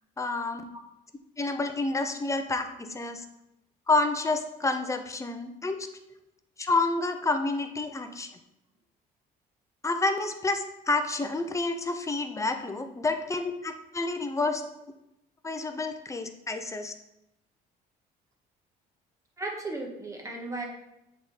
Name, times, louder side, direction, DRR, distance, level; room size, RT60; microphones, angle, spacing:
voice 1, 0.2-0.7 1.4-3.2 3.9-5.9 6.6-8.3 9.8-14.6 15.4-16.9, left 3 dB, 20° left, 7 dB, 0.7 m, -29 dB
voice 2, 19.4-20.7, right 2 dB, 20° right, 0 dB, 1.5 m, -35 dB
7.5 x 3.7 x 4.1 m, 0.85 s
cardioid pair, 110°, 17 cm